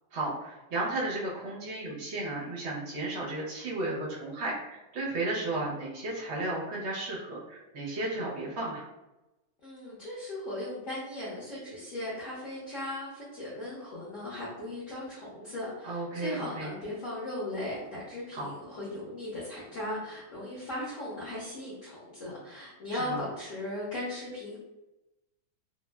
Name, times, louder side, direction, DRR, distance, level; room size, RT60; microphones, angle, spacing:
voice 1, 0.1-8.8 15.8-16.7 18.3-18.5 22.9-23.2, right 2 dB, 65° right, -5 dB, 0.7 m, -34 dB
voice 2, 9.6-24.6, left 1 dB, 55° left, -8 dB, 0.9 m, -37 dB
3.4 x 2.1 x 2.2 m, 0.98 s
omnidirectional pair, 2.2 m